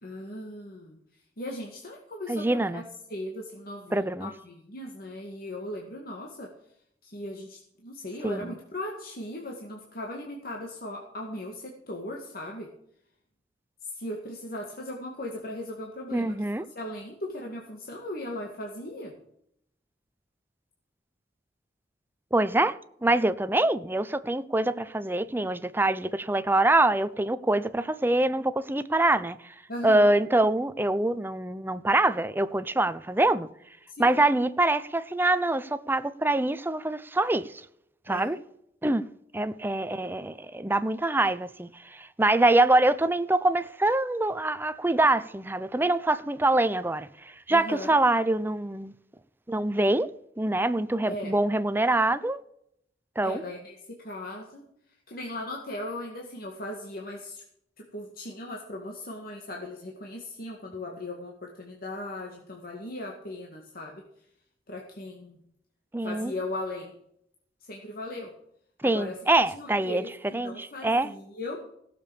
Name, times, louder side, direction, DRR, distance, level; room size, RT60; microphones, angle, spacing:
voice 1, 0.0-1.0 1.4-2.8 3.1-6.5 7.0-12.7 13.8-19.2 29.7-30.2 33.9-34.1 38.1-38.3 47.5-48.0 51.1-51.3 53.2-54.7 55.1-57.4 57.8-64.0 64.7-65.4 66.0-67.0 67.6-68.4 68.8-69.3 69.5-71.7, left 1 dB, 55° left, 2.1 m, -38 dB
voice 2, 2.3-2.8 3.9-4.3 8.2-8.5 16.1-16.6 22.3-22.8 23.0-29.4 29.8-33.5 34.0-37.5 38.1-38.4 38.8-39.0 39.3-47.1 47.5-48.9 49.5-50.1 50.4-52.4 53.2-53.4 65.9-66.3 68.8-70.0 70.3-71.1, right 2 dB, 10° right, 0.6 m, -24 dB
16.5 x 6.9 x 7.0 m
head